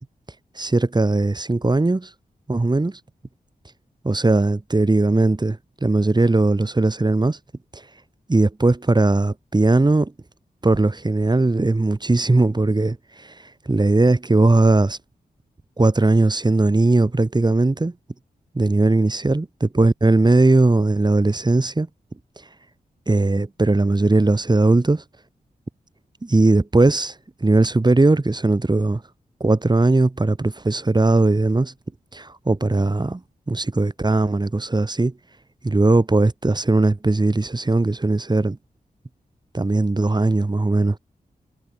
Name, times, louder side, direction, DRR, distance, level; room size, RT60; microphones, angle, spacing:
voice 1, 0.6-2.1 2.5-3.0 4.0-7.4 7.7-7.8 8.3-10.1 10.6-13.3 13.7-15.0 15.8-17.9 18.5-21.9 23.1-25.0 26.2-27.1 27.4-29.0 29.4-31.7 32.1-33.2 33.5-35.1 35.6-38.6 39.5-41.0, right 2 dB, 25° right, 3.7 m, -19 dB
cardioid pair, 70°, 16 cm